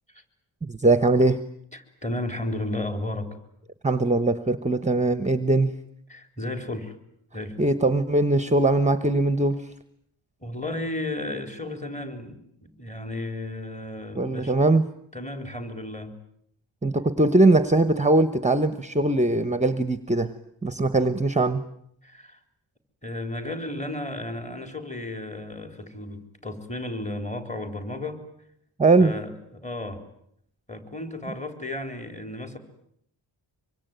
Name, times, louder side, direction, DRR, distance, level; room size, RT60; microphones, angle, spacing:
voice 1, 0.6-1.4 3.8-5.7 7.6-9.7 14.2-14.8 16.8-20.3 20.6-21.6 28.8-29.1, right 2 dB, 15° right, 13 dB, 1.0 m, -21 dB
voice 2, 1.7-3.3 6.1-7.0 7.3-7.7 10.4-14.5 15.1-16.1 22.0-22.4 23.0-28.2 29.0-30.0 30.7-32.6, left 1 dB, 15° left, 8 dB, 4.3 m, -33 dB
24.5 x 24.5 x 9.2 m, 0.72 s
wide cardioid pair, 125°, 47 cm